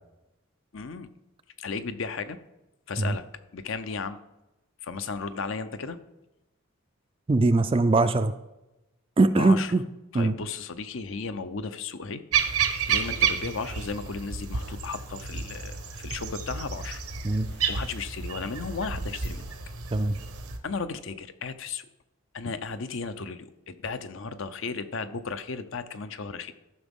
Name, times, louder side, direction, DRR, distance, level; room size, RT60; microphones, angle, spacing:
voice 1, 0.7-1.1 1.6-2.4 2.9-3.3 3.5-4.2 4.8-6.0 9.4-9.7 10.1-12.2 12.9-17.0 17.7-19.4 20.6-21.9 22.3-26.5, left 4 dB, 60° left, 11 dB, 0.6 m, -35 dB
voice 2, 7.3-8.3 9.2-9.8 10.1-10.4 17.2-17.5 19.9-20.2, right 2 dB, 25° right, 11 dB, 0.3 m, -21 dB
sound 1, 12.3-20.6, right 7 dB, 85° right, 1.1 m, -30 dB
13.5 x 6.0 x 3.6 m, 0.97 s
head